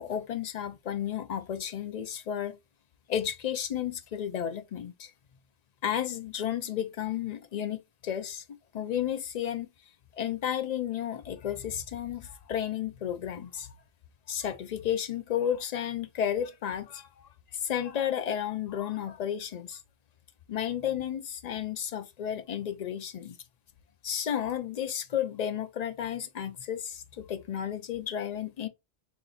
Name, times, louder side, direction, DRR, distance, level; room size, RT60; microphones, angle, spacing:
voice 1, 0.0-2.6 3.1-5.1 5.8-8.4 8.7-9.7 10.2-13.7 14.3-19.8 20.5-23.4 24.0-28.7, left 9 dB, 60° left, 0.4 m, -32 dB
3.1 x 2.9 x 3.8 m
omnidirectional pair, 1.2 m